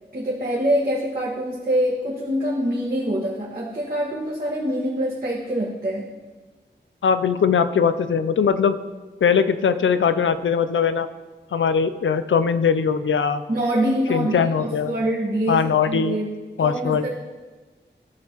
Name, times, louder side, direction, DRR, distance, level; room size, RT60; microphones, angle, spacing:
voice 1, 0.1-6.1 13.5-17.1, right 1 dB, 50° right, -6 dB, 1.5 m, -25 dB
voice 2, 7.0-8.8 9.2-11.1 11.5-13.4 14.1-14.9 15.5-16.2 16.6-17.1, left 6 dB, 90° left, 11 dB, 0.5 m, -20 dB
14.0 x 6.3 x 3.0 m, 1.3 s
wide cardioid pair, 80°, 19 cm